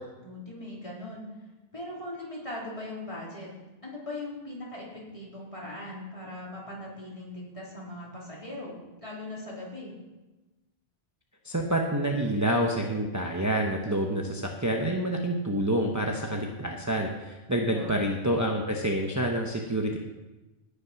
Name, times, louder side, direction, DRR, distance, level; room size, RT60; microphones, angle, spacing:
voice 1, 0.2-1.2 1.7-3.5 3.8-9.9 17.5-17.9, left 1 dB, 35° left, -5 dB, 4.0 m, -40 dB
voice 2, 11.4-20.0, right 1 dB, 20° right, 1 dB, 1.0 m, -28 dB
17.0 x 6.9 x 5.9 m, 1.1 s
omnidirectional pair, 1.0 m